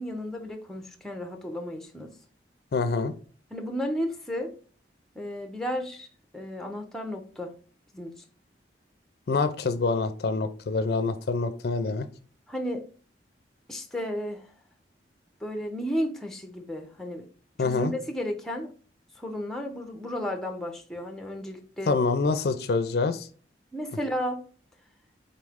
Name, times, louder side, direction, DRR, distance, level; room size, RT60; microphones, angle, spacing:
voice 1, 0.0-2.1 3.5-4.5 5.2-6.1 6.3-7.5 7.9-8.1 12.5-12.8 13.7-14.5 15.4-17.3 17.6-18.7 19.2-22.0 23.7-24.4, equal, ahead, 3 dB, 0.5 m, -33 dB
voice 2, 2.7-3.1 9.3-12.1 17.6-17.9 21.9-23.3, left 4 dB, 55° left, 10 dB, 0.4 m, -26 dB
4.1 x 3.1 x 3.5 m, 0.40 s
head